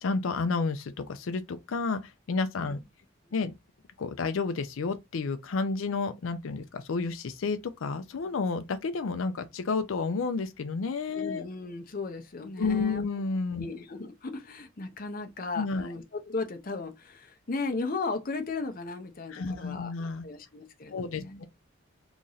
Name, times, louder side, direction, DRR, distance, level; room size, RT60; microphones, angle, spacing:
voice 1, 0.0-2.8 3.3-3.5 4.0-11.4 12.6-13.7 15.6-15.9 19.3-20.2 20.9-21.4, left 4 dB, 85° left, 0.5 m, -31 dB
voice 2, 11.2-13.1 13.6-19.9 20.2-21.4, left 3 dB, 45° left, 0.7 m, -36 dB
3.0 x 2.6 x 3.9 m
head